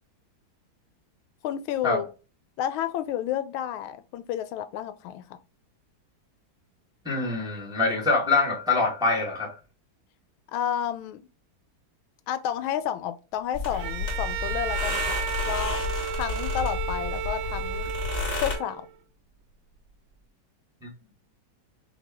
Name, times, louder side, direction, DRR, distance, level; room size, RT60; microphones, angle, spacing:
voice 1, 1.4-2.1 2.6-5.2 10.5-11.3 12.3-15.8 16.1-17.9 18.4-18.9, left 10 dB, 90° left, 1.4 m, -31 dB
voice 2, 7.0-9.5 20.8-20.9, left 3 dB, 5° right, 0.8 m, -24 dB
sound 1, 13.5-18.5, left 4 dB, 50° left, 2.8 m, -31 dB
Bowed string instrument, 13.7-19.0, right 9 dB, 80° right, 1.3 m, -33 dB
6.2 x 2.2 x 3.4 m
omnidirectional pair, 2.2 m